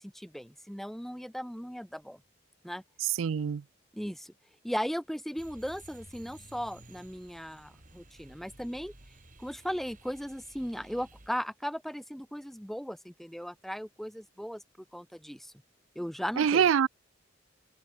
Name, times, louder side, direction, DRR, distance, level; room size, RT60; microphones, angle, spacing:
voice 1, 0.0-2.2 2.6-2.8 3.9-4.3 4.6-8.9 9.4-14.6 14.9-15.5 15.9-16.6, equal, ahead, 1.5 m, -37 dB
voice 2, 3.0-3.6 16.4-16.9, right 8 dB, 85° right, 0.4 m, -25 dB
sound 1, 5.4-11.3, right 2 dB, 40° right, 3.0 m, -54 dB
head